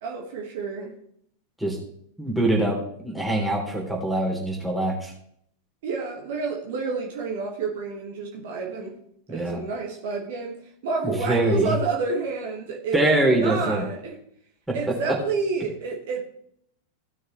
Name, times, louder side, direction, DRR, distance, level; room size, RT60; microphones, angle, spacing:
voice 1, 0.0-0.9 5.8-8.9 9.3-14.2 14.7-16.2, right 4 dB, 55° right, 0 dB, 1.8 m, -29 dB
voice 2, 2.2-2.8 3.0-5.1 9.3-9.6 11.2-11.7 12.9-13.8 14.7-14.8, right 1 dB, 5° right, -1 dB, 3.1 m, -23 dB
16.0 x 6.4 x 3.3 m, 0.67 s
figure-of-eight pair, 90°, 0 cm